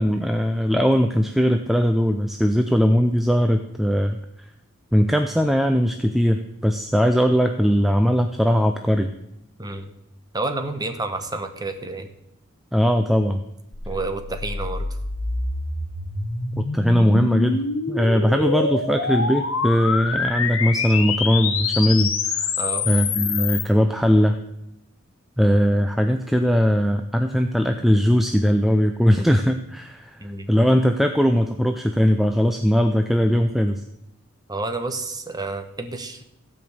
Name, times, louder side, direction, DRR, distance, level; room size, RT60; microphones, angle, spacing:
voice 1, 0.0-4.2 4.9-9.1 12.7-13.4 16.7-22.5 22.9-24.4 25.4-33.8, equal, ahead, 6 dB, 0.4 m, -20 dB
voice 2, 9.6-9.9 10.3-12.1 13.9-14.9 18.3-18.5 22.6-22.9 30.2-30.5 34.5-36.2, right 2 dB, 20° right, 7 dB, 1.0 m, -30 dB
sound 1, 13.7-23.6, left 4 dB, 70° left, 1.5 m, -26 dB
15.5 x 5.3 x 8.0 m, 0.81 s
head